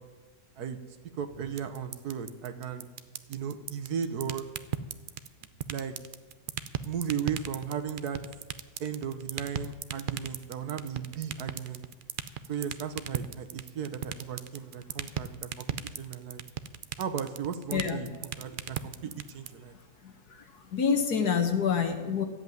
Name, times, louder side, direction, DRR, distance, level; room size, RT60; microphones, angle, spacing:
voice 1, 1.2-2.9 3.3-4.4 5.7-5.9 6.8-8.2 8.8-11.8 12.5-15.7 16.0-16.4 17.0-18.1 18.4-19.7, right 7 dB, 90° right, 8 dB, 1.6 m, -35 dB
sound 1, 1.6-19.5, right 9 dB, 65° right, 0.5 m, -34 dB
voice 2, 17.7-18.0 20.0-20.1 20.7-22.2, left 6 dB, 85° left, 6 dB, 2.0 m, -26 dB
13.5 x 8.1 x 9.4 m, 1.3 s
omnidirectional pair, 1.6 m